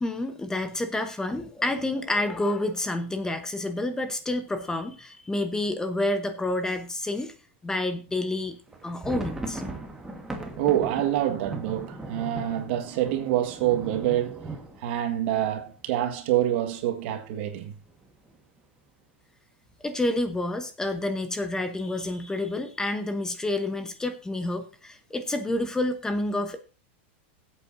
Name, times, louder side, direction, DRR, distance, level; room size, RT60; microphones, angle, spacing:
voice 1, 0.0-7.3 7.6-8.6 8.8-9.6 19.8-26.6, left 2 dB, 10° left, 1.0 m, -29 dB
sound 1, 8.7-16.4 16.7-16.8 17.1-17.3 17.9-18.3, right 2 dB, 10° right, 1.6 m, -39 dB
voice 2, 10.6-14.5 14.8-17.7, right 12 dB, 65° right, 1.7 m, -26 dB
18.5 x 8.2 x 2.7 m
supercardioid pair, 140°, 6 cm